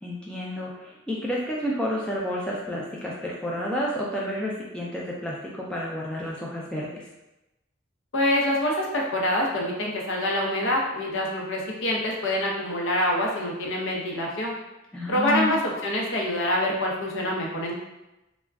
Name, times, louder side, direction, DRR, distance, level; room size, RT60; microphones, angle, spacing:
voice 1, 0.0-7.0 14.9-15.6, left 1 dB, 5° left, -5 dB, 0.3 m, -30 dB
voice 2, 8.1-14.5 15.1-17.7, left 1 dB, 75° left, -2 dB, 0.6 m, -26 dB
2.4 x 2.1 x 3.4 m, 0.96 s
head